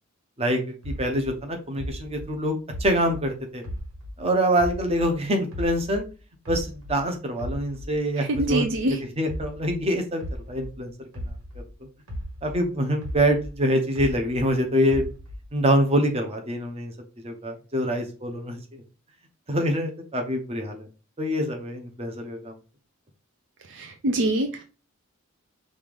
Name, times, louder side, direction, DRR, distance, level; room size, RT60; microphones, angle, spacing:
voice 1, 0.4-3.6 4.2-6.0 6.5-8.6 9.0-10.2 10.5-10.9 12.4-15.1 15.5-16.9 17.2-18.6 19.5-20.9 21.2-22.5, equal, 30° right, 4 dB, 0.8 m, -25 dB
sound 1, 0.8-4.2 4.6-7.0 7.4-11.7 12.1-14.5 14.9-15.6, equal, 90° right, 1.6 m, -36 dB
voice 2, 8.3-9.0 23.7-24.6, right 1 dB, 60° right, 5 dB, 0.6 m, -24 dB
5.4 x 2.5 x 3.4 m, 0.34 s
head